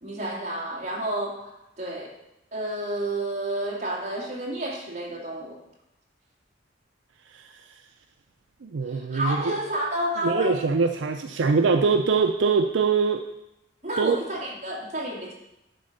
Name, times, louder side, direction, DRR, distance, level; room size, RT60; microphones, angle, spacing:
voice 1, 0.0-2.1 2.5-5.6 8.8-10.6 13.8-15.3, right 1 dB, 40° right, -3 dB, 2.4 m, -30 dB
voice 2, 8.6-9.6 10.2-13.2 14.0-14.2, right 4 dB, 70° right, 6 dB, 0.5 m, -23 dB
10.5 x 4.3 x 6.6 m, 0.88 s
head